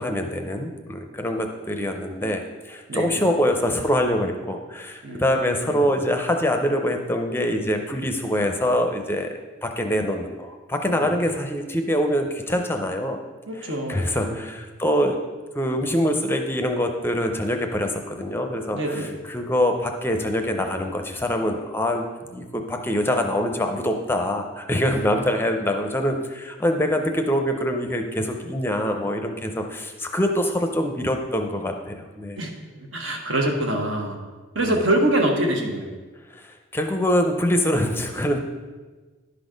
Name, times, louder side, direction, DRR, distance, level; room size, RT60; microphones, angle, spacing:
voice 1, 0.0-9.3 9.6-13.2 13.5-15.2 15.5-22.0 22.3-32.4 34.6-34.7 36.3-38.4, equal, 10° left, 4 dB, 0.5 m, -24 dB
voice 2, 5.0-5.9 10.9-11.2 13.5-14.5 18.7-19.1 32.4-32.5 32.8-34.2 34.5-35.9, right 1 dB, 75° right, 1 dB, 1.3 m, -25 dB
11.0 x 4.1 x 5.0 m, 1.3 s
head